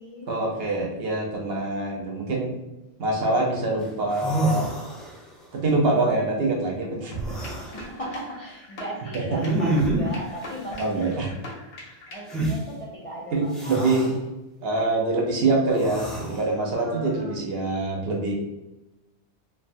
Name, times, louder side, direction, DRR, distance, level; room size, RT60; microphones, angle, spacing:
voice 1, 0.3-2.5 3.0-4.7 5.5-7.4 9.1-9.2 10.8-11.3 13.3-14.0 14.6-18.3, right 2 dB, 65° right, -1 dB, 0.8 m, -25 dB
sound 1, 3.8-3.9 4.1-5.4 7.2-7.8 9.4-10.2 12.3-12.6 13.5-14.1 15.7-16.5, right 2 dB, ahead, 0.7 m, -27 dB
sound 2, 7.1-12.4, right 1 dB, 75° left, 1.0 m, -39 dB
voice 2, 7.6-11.2 11.7-13.9 16.5-17.4, right 1 dB, 50° left, -6 dB, 0.4 m, -38 dB
3.2 x 2.1 x 2.6 m, 0.98 s
omnidirectional pair, 1.2 m